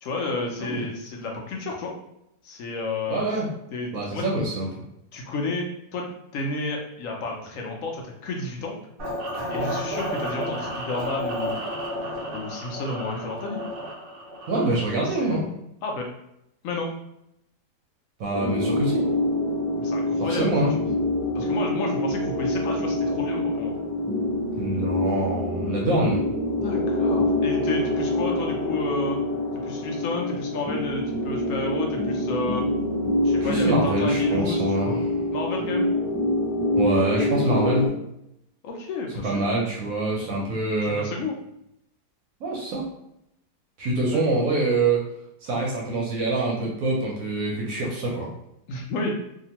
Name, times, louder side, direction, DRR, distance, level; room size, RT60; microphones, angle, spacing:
voice 1, 0.0-2.0 2.4-3.3 3.7-4.2 5.1-6.1 6.3-8.8 9.5-11.6 12.3-13.6 15.0-15.4 15.8-16.1 16.6-16.9 19.8-20.9 21.3-23.7 26.6-29.2 29.6-32.6 33.2-35.0 35.3-35.9 38.6-39.4 41.0-41.4 44.1-44.4 48.7-49.1, left 3 dB, 70° left, 1 dB, 0.8 m, -31 dB
voice 2, 3.1-3.5 3.9-4.7 14.5-15.5 18.2-19.1 20.3-20.7 24.6-26.2 33.4-34.9 36.8-37.9 39.2-41.1 42.4-42.9 43.8-45.0 45.4-48.3, right 2 dB, 65° right, -2 dB, 0.9 m, -25 dB
sound 1, 9.0-14.9, equal, 80° right, 0.5 m, -32 dB
sound 2, 18.3-37.9, left 1 dB, 15° left, 0.8 m, -25 dB
2.8 x 2.4 x 2.8 m, 0.79 s
omnidirectional pair, 1.8 m